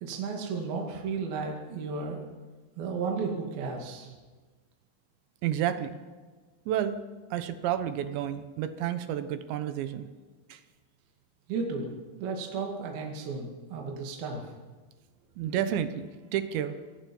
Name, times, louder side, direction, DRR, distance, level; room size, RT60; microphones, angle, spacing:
voice 1, 0.0-2.3 2.8-4.1 11.5-11.9 12.2-14.5, right 4 dB, 55° right, 0 dB, 3.7 m, -34 dB
voice 2, 5.4-6.0 6.7-7.0 7.3-10.1 10.5-10.6 15.4-17.0, right 10 dB, 75° right, 10 dB, 2.9 m, -31 dB
25.5 x 19.0 x 5.5 m, 1.4 s
omnidirectional pair, 5.9 m